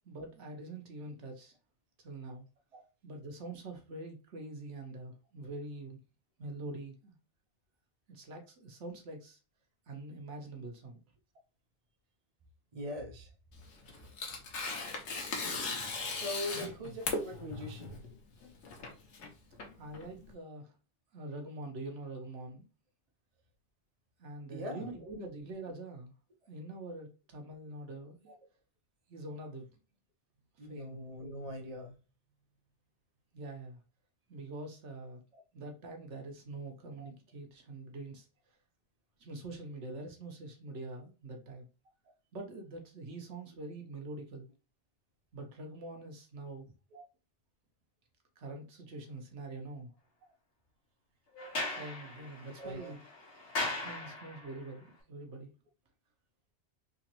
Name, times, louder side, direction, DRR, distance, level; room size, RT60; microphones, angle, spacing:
voice 1, 0.0-1.5 2.0-2.5 3.0-6.0 6.4-7.1 8.1-9.4 9.9-11.0 16.5-17.0 19.8-20.7 21.1-22.6 24.2-26.1 26.5-28.3 29.1-29.7 30.6-31.0 33.3-33.8 34.3-35.2 35.5-38.3 39.2-41.7 42.3-44.5 45.3-46.7 48.4-49.9 51.5-53.0 53.8-55.5, right 2 dB, 75° right, 1.2 m, -45 dB
voice 2, 12.7-13.3 16.1-18.0 24.5-24.9 30.6-32.0 35.3-35.4 37.0-37.1 46.9-47.0 52.6-52.9, left 1 dB, 35° right, 0.9 m, -41 dB
Tearing, 13.5-20.3, left 3 dB, 80° left, 1.2 m, -38 dB
Sliding door, 51.3-54.6, left 2 dB, 55° left, 1.5 m, -39 dB
3.7 x 2.9 x 2.9 m
omnidirectional pair, 1.2 m